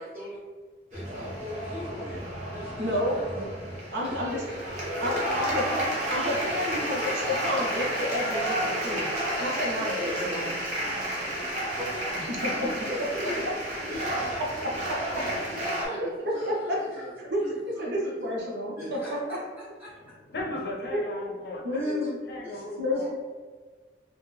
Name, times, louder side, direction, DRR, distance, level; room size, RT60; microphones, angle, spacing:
voice 1, 0.0-0.4 0.9-3.5 3.9-4.7 5.0-5.3 6.5-6.9 9.6-12.2 12.5-13.5 13.9-14.6 15.1-15.4 15.8-18.3 18.7-19.9 21.7-22.1 22.4-22.6 23.0-23.1, left 1 dB, 5° right, -11 dB, 0.6 m, -40 dB
sound 1, 0.9-15.9, right 1 dB, 40° right, 0.7 m, -31 dB
voice 2, 2.8-3.5 3.9-4.4 5.0-10.5 12.2-12.5 17.3-17.4 17.8-19.0 21.6-22.1 22.8-23.1, left 1 dB, 75° right, -3 dB, 0.7 m, -30 dB
voice 3, 19.9-22.0 22.3-23.1, left 2 dB, 60° left, 0 dB, 0.5 m, -37 dB
2.5 x 2.1 x 3.1 m, 1.4 s
head